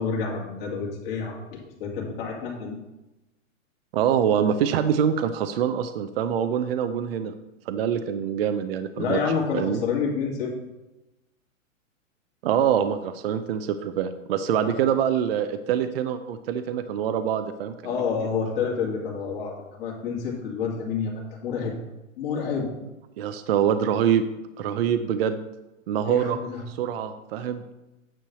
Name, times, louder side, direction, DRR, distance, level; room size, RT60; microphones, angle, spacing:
voice 1, 0.0-2.8 9.0-10.5 14.6-14.8 17.8-21.7 22.2-22.7 26.1-26.6, left 5 dB, 45° left, -3 dB, 2.3 m, -29 dB
voice 2, 3.9-7.3 7.7-9.2 9.5-9.8 12.4-17.7 23.2-24.2 24.6-25.4 25.9-26.4 26.7-27.7, right 8 dB, 50° right, 9 dB, 0.5 m, -25 dB
9.1 x 3.3 x 6.8 m, 1.0 s
hypercardioid pair, 155°, 40 cm